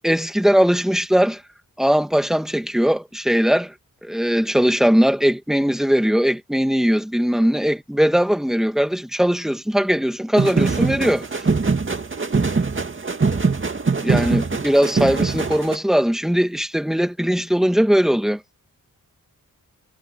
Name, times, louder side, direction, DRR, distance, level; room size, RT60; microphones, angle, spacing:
voice 1, 0.0-1.4 1.8-3.7 4.0-11.4 14.0-18.4, equal, ahead, 1.7 m, -19 dB
sound 1, 10.4-15.8, right 4 dB, 35° right, 2.3 m, -22 dB
wide cardioid pair, 115°, 34 cm